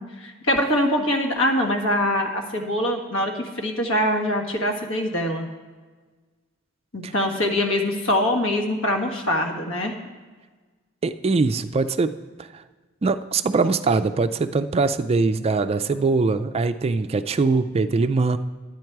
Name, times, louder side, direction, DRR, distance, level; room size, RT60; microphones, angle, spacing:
voice 1, 0.0-5.5 6.9-9.9, left 1 dB, 70° left, 2 dB, 1.6 m, -23 dB
voice 2, 11.0-12.1 12.4-12.6 13.0-18.4, right 3 dB, 30° right, 11 dB, 0.3 m, -22 dB
12.0 x 9.3 x 4.6 m, 1.4 s
head